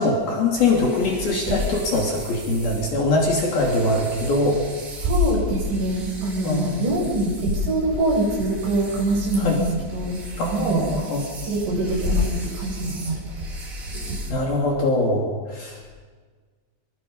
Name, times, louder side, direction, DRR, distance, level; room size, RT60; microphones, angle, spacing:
voice 1, 0.0-4.6 6.4-6.8 9.4-9.6 10.4-11.2 14.3-15.9, left 2 dB, 55° left, -2 dB, 4.7 m, -22 dB
sound 1, 0.6-14.3, right 2 dB, 25° right, 2.4 m, -37 dB
voice 2, 5.0-9.6 9.9-10.2 10.5-10.8 11.4-13.5 13.8-14.3, right 1 dB, 90° right, -2 dB, 10.0 m, -23 dB
26.0 x 24.0 x 5.6 m, 1.5 s
omnidirectional pair, 5.2 m